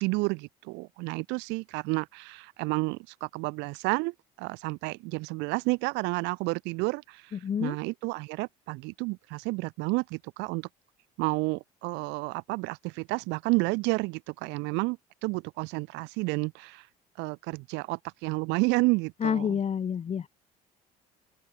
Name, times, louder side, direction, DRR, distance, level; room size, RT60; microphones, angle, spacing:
voice 1, 0.0-10.7 11.2-16.9 17.2-19.6, right 26 dB, 75° right, 1.9 m, -31 dB
voice 2, 7.3-7.8 19.2-20.3, left 7 dB, 35° left, 0.8 m, -28 dB
open air
hypercardioid pair, 65°, 18 cm